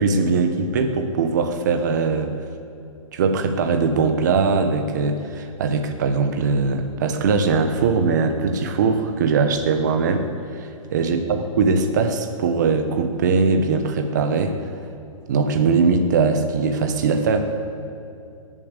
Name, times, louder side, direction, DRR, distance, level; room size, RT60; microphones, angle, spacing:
voice 1, 0.0-2.3 3.1-10.2 10.5-11.2 11.6-14.6 15.3-17.4, right 4 dB, 30° right, 6 dB, 1.1 m, -21 dB
22.0 x 7.5 x 8.3 m, 2.6 s
hypercardioid pair, 175°, 18 cm